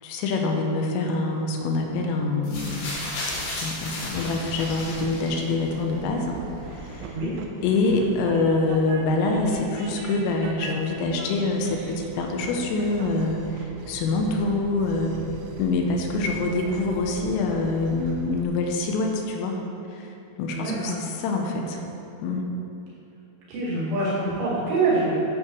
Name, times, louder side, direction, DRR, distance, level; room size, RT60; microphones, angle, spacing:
voice 1, 0.0-3.0 3.6-6.4 6.6-7.2 7.6-15.2 15.6-19.6 19.9-21.8 22.2-22.5, left 3 dB, 85° left, 2 dB, 3.3 m, -25 dB
sound 1, 2.4-5.7 6.6-6.7, left 1 dB, 55° left, 3.5 m, -33 dB
Train, 4.6-18.4, right 4 dB, 85° right, 3.4 m, -41 dB
voice 2, 20.5-20.9 23.5-25.3, right 2 dB, 60° right, -9 dB, 4.3 m, -25 dB
11.5 x 8.4 x 3.2 m, 2.7 s
omnidirectional pair, 6.0 m